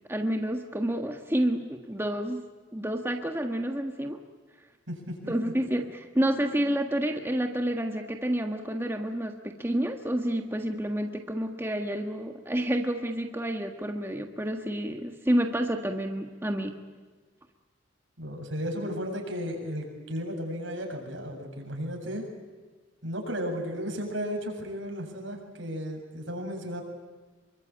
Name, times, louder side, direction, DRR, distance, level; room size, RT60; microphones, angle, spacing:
voice 1, 0.1-2.4 2.7-4.2 5.3-16.8, right 1 dB, 10° right, 3 dB, 1.6 m, -29 dB
voice 2, 4.9-5.5 18.2-22.3 23.0-26.8, equal, 75° right, 3 dB, 7.7 m, -34 dB
27.5 x 24.0 x 8.9 m, 1.4 s
head